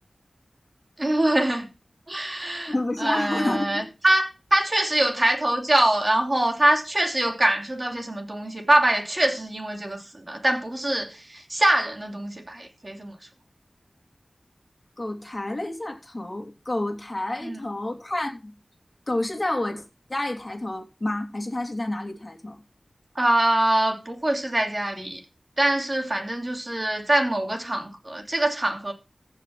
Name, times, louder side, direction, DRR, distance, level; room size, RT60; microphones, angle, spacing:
voice 1, 1.0-1.7 2.1-2.7 3.0-13.1 17.4-17.6 23.1-25.2 25.6-28.9, right 1 dB, 35° right, 2.9 m, -24 dB
voice 2, 2.7-3.9 15.0-18.5 19.1-22.6, left 1 dB, 30° left, 2.9 m, -29 dB
15.0 x 5.6 x 5.8 m
wide cardioid pair, 70°, 0 cm